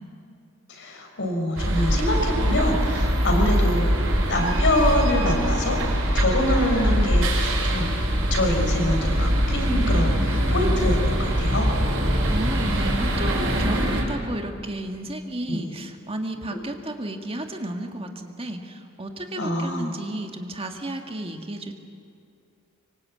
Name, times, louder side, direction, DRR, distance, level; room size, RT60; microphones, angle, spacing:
voice 1, 0.7-4.0 4.3-5.8 6.1-11.7 15.5-15.6 19.4-19.9, left 1 dB, 60° left, 3 dB, 5.0 m, -25 dB
sound 1, 1.6-14.0, equal, 65° right, 6.4 m, -22 dB
voice 2, 12.3-21.7, right 1 dB, 25° right, 4 dB, 1.7 m, -32 dB
25.5 x 24.5 x 8.6 m, 2.4 s
head